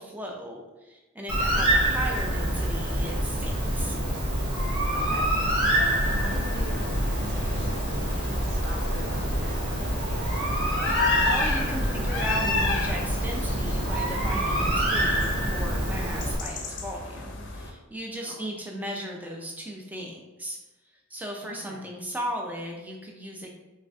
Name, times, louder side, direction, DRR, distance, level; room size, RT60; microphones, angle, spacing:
voice 1, 0.0-4.0 10.8-11.0 11.2-20.6 21.1-23.5, equal, 10° right, 0 dB, 0.4 m, -36 dB
Bird, 1.3-16.4, right 1 dB, 85° right, 1.0 m, -26 dB
voice 2, 4.6-5.3 5.7-10.3 17.1-17.2 18.2-18.4 21.4-21.8, right 1 dB, 55° right, -3 dB, 0.9 m, -42 dB
sound 1, 5.4-17.7, left 3 dB, 55° left, 0.5 m, -32 dB
3.8 x 3.1 x 2.4 m, 1.1 s
head